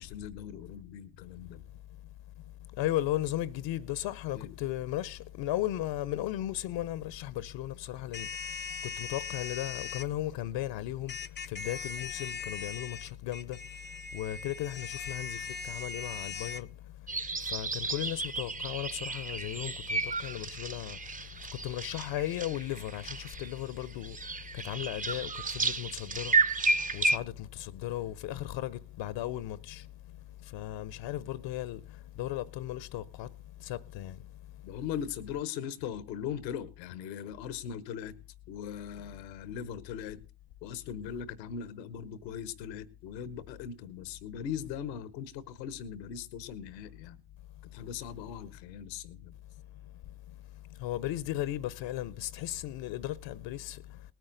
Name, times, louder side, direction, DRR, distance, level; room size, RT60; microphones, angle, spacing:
voice 1, 0.0-1.6 4.3-4.6 34.6-38.1 38.5-40.2 40.6-47.2 47.7-49.3, left 8 dB, 90° left, 0.9 m, -39 dB
voice 2, 2.8-8.3 9.0-11.2 11.5-13.6 14.1-16.7 17.5-21.0 21.6-24.2 24.6-26.3 26.9-29.8 30.5-31.8 32.2-33.3 33.6-34.2 50.8-53.8, left 14 dB, 60° left, 0.7 m, -35 dB
sound 1, 8.1-10.1 11.1-16.6, left 5 dB, 20° left, 0.6 m, -40 dB
sound 2, 17.1-27.2, right 3 dB, 15° right, 0.6 m, -32 dB
19.0 x 9.2 x 3.8 m
hypercardioid pair, 60°, 50 cm